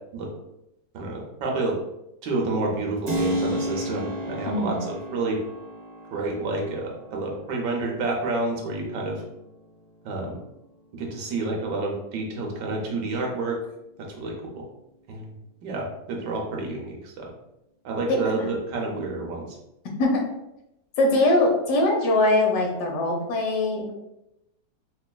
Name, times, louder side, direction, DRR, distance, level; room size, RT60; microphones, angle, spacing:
voice 1, 0.9-1.7 2.2-5.4 6.1-9.2 10.0-10.4 11.0-13.6 14.0-14.6 15.1-15.3 15.6-17.3 17.8-19.5, right 2 dB, 85° right, 0 dB, 1.4 m, -29 dB
Keyboard (musical), 3.1-11.6, equal, 65° right, 0.5 m, -34 dB
voice 2, 4.5-4.8 18.1-18.5 20.0-20.3 21.0-23.9, left 2 dB, 75° left, 1 dB, 1.3 m, -22 dB
4.9 x 2.4 x 2.2 m, 0.87 s
omnidirectional pair, 1.8 m